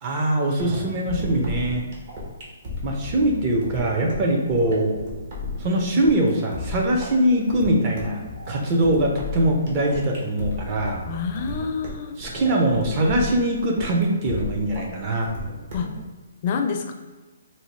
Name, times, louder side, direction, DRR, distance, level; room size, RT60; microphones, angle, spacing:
voice 1, 0.0-1.8 2.8-5.0 5.6-11.0 12.2-15.3, right 1 dB, 30° right, 0 dB, 0.6 m, -22 dB
sound 1, 0.6-16.0, left 2 dB, 45° right, 1.1 m, -34 dB
voice 2, 11.1-12.2 15.7-15.9 16.4-16.9, left 6 dB, 35° left, 5 dB, 0.4 m, -27 dB
4.0 x 2.2 x 3.1 m, 1.3 s
hypercardioid pair, 160°, 0 cm